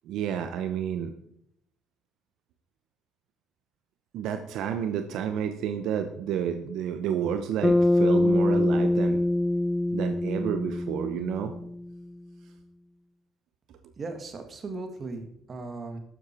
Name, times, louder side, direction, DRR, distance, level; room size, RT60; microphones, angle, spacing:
voice 1, 0.1-1.1 4.1-9.2 9.9-11.5, right 8 dB, 75° right, 8 dB, 0.9 m, -30 dB
Bass guitar, 7.6-12.0, left 1 dB, 5° left, 0.3 m, -24 dB
voice 2, 14.0-16.0, right 3 dB, 35° right, 6 dB, 2.0 m, -37 dB
12.0 x 7.7 x 4.5 m, 0.73 s
cardioid pair, 100°, 0 cm